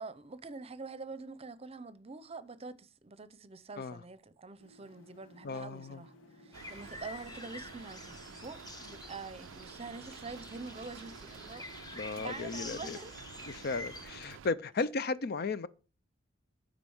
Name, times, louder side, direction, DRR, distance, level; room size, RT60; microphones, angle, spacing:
voice 1, 0.0-11.7 12.2-13.2, right 4 dB, 30° right, 0.6 m, -46 dB
sound 1, 4.6-14.2, left 1 dB, 80° left, 1.5 m, -58 dB
voice 2, 5.4-6.0 11.9-13.0 13.5-15.7, left 4 dB, 50° left, 0.5 m, -35 dB
sound 2, 6.5-14.1, left 3 dB, 20° left, 0.7 m, -48 dB
Rain, 6.5-14.5, right 8 dB, 70° right, 0.3 m, -51 dB
8.9 x 5.1 x 6.3 m
head